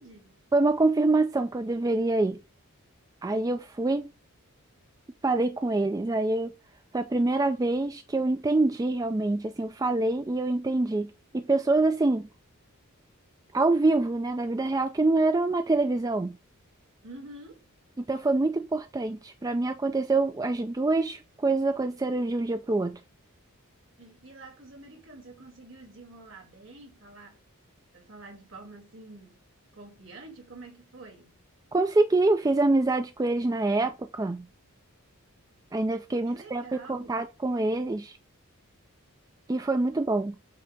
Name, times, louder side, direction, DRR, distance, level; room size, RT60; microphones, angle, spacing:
voice 1, 0.0-0.3 17.0-17.6 24.0-27.4 27.9-29.4 29.7-31.4 36.3-37.2, right 2 dB, 60° right, 2.6 m, -48 dB
voice 2, 0.5-2.4 3.2-4.1 5.2-6.5 6.9-12.3 13.5-16.4 18.0-23.0 31.7-34.5 35.7-36.6 36.9-38.2 39.5-40.3, right 2 dB, 15° right, 0.3 m, -25 dB
8.4 x 2.8 x 5.1 m
head